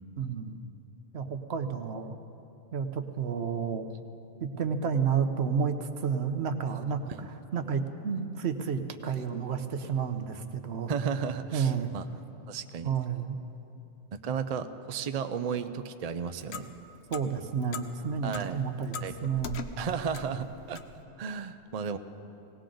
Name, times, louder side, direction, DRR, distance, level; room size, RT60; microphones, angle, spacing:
voice 1, 0.2-0.6 1.1-2.2 2.7-3.9 4.4-7.0 7.5-10.9 11.5-11.9 12.8-13.4 17.1-19.7, right 6 dB, 80° right, 8 dB, 1.1 m, -31 dB
voice 2, 10.9-12.1 12.5-12.9 14.1-16.7 18.2-18.6 19.0-19.4 19.8-20.8 21.2-22.0, right 6 dB, 45° right, 8 dB, 0.6 m, -34 dB
Clock, 16.0-21.0, left 6 dB, 80° left, 1.0 m, -43 dB
19.0 x 18.0 x 3.9 m, 2.9 s
omnidirectional pair, 1.1 m